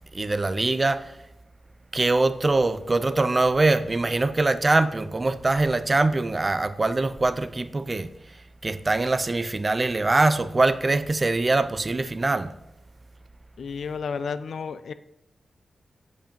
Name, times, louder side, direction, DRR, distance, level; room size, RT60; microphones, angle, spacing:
voice 1, 0.1-1.1 1.9-8.1 8.6-12.5, right 2 dB, 25° right, 0.3 m, -23 dB
voice 2, 13.6-14.9, left 5 dB, 75° left, 0.3 m, -32 dB
5.2 x 4.8 x 5.1 m
wide cardioid pair, 160°, 0 cm